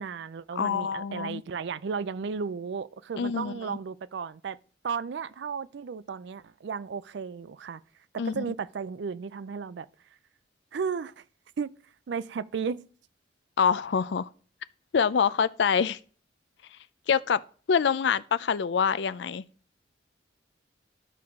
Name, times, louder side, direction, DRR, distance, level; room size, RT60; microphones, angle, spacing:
voice 1, 0.0-4.6 4.8-7.8 8.1-9.9 10.7-11.2 11.6-11.7 12.1-12.9, right 5 dB, 65° right, 0.4 m, -34 dB
voice 2, 0.6-1.4 3.2-3.8 8.2-8.4 13.6-14.3 14.9-16.0 17.1-17.4 17.7-19.4, left 6 dB, 65° left, 0.4 m, -25 dB
13.5 x 4.6 x 3.6 m
head